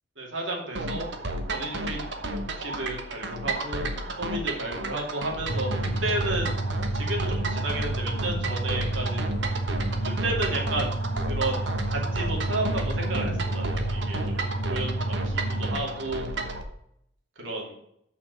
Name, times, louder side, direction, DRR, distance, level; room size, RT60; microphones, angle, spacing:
voice 1, 0.2-1.1 1.5-2.1 2.6-3.9 4.2-5.7 6.0-6.5 6.9-9.3 10.0-10.9 11.3-14.3 14.7-14.9 15.2-16.3 17.4-17.7, right 2 dB, 80° right, -1 dB, 2.6 m, -32 dB
sound 1, 0.8-16.6, right 2 dB, 65° right, 1.2 m, -33 dB
sound 2, 5.5-15.7, right 2 dB, 60° left, 2.0 m, -30 dB
6.5 x 5.7 x 6.9 m, 0.74 s
head